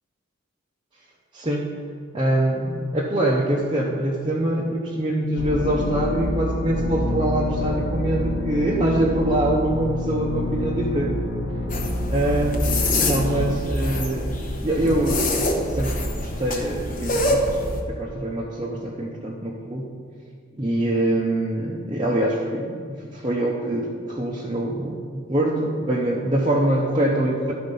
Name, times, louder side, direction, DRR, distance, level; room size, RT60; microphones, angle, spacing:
voice 1, 1.3-1.7 2.1-11.2 12.1-15.4 15.7-15.9 16.2-19.9 20.6-27.5, right 1 dB, 25° right, -4 dB, 0.7 m, -24 dB
sound 1, 5.4-13.5, left 2 dB, 75° left, 1.2 m, -27 dB
sound 2, 11.7-17.8, left 1 dB, 40° left, 1.0 m, -25 dB
12.5 x 4.3 x 5.4 m, 2.1 s
head